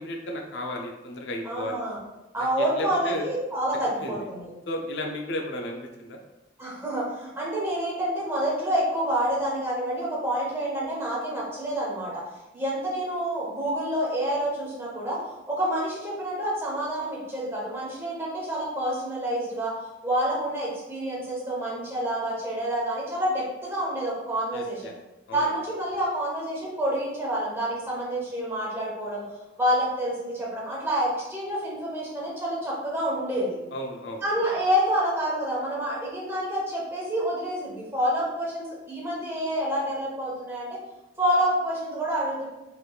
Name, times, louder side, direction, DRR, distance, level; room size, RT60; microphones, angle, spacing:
voice 1, 0.0-1.8 2.4-3.3 4.0-4.2 4.7-6.2 24.5-24.9 25.3-25.5 33.7-34.2, left 1 dB, 60° left, 2 dB, 0.4 m, -34 dB
voice 2, 1.4-2.0 2.3-4.5 6.6-12.2 12.5-15.2 15.5-19.7 20.0-24.9 25.3-29.2 29.6-33.6 34.2-40.7 41.2-42.5, right 1 dB, 10° right, -5 dB, 0.8 m, -28 dB
3.3 x 2.9 x 2.3 m, 1.0 s
head